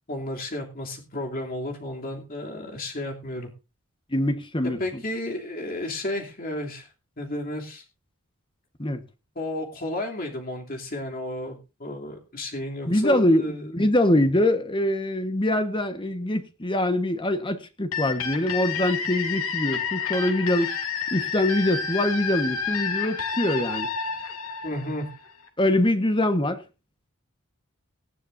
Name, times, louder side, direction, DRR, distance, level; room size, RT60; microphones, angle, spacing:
voice 1, 0.1-3.5 4.8-6.9 7.2-7.8 9.3-13.7 24.6-25.1, left 1 dB, 40° left, 2.9 m, -32 dB
voice 2, 4.1-5.0 8.8-9.0 12.9-20.7 21.1-23.9 25.6-26.6, left 1 dB, 20° left, 1.3 m, -24 dB
sound 1, 17.9-25.5, left 6 dB, 75° left, 2.4 m, -30 dB
18.5 x 12.5 x 2.6 m
head